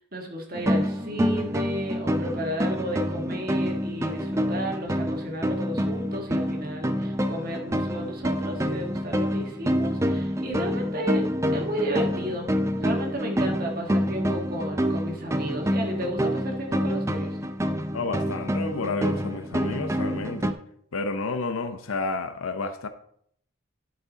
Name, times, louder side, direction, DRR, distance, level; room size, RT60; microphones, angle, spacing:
voice 1, 0.1-11.2 11.5-12.5 12.8-17.4, equal, 45° right, 1.4 m, -33 dB
sound 1, 0.5-20.5, equal, 15° right, 0.5 m, -27 dB
voice 2, 17.9-20.5 20.9-22.9, left 3 dB, 90° left, 0.7 m, -30 dB
11.0 x 6.0 x 4.0 m
head